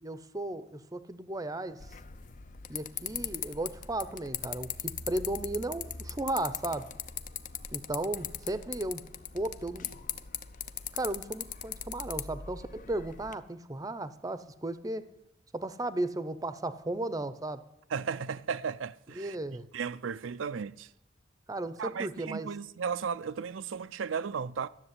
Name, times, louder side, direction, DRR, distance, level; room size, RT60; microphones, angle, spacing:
voice 1, 0.0-1.8 2.7-4.7 5.1-6.9 7.7-9.0 9.3-9.9 10.9-15.1 15.5-17.6 19.1-19.7 21.5-22.5, right 1 dB, 20° right, 0.6 m, -35 dB
sound 1, 1.8-13.4, left 8 dB, 45° left, 0.6 m, -40 dB
voice 2, 17.9-19.4 19.7-20.9 21.8-24.7, right 6 dB, 90° right, 0.5 m, -35 dB
12.5 x 7.3 x 9.6 m
head